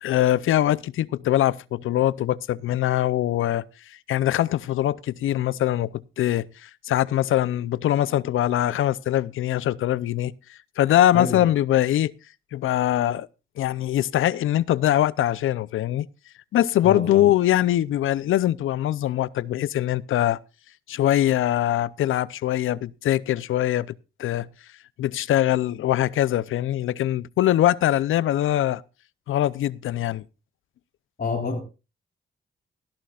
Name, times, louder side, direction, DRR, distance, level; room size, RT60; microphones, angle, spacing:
voice 1, 0.0-3.7 4.1-12.1 12.5-13.3 13.6-16.1 16.5-20.4 20.9-23.9 24.2-24.5 25.0-28.8 29.3-30.2, left 13 dB, 85° left, 0.6 m, -22 dB
voice 2, 16.8-17.2 31.2-31.6, left 4 dB, 50° left, 3.7 m, -28 dB
18.5 x 12.5 x 2.4 m
cardioid pair, 65°, 20 cm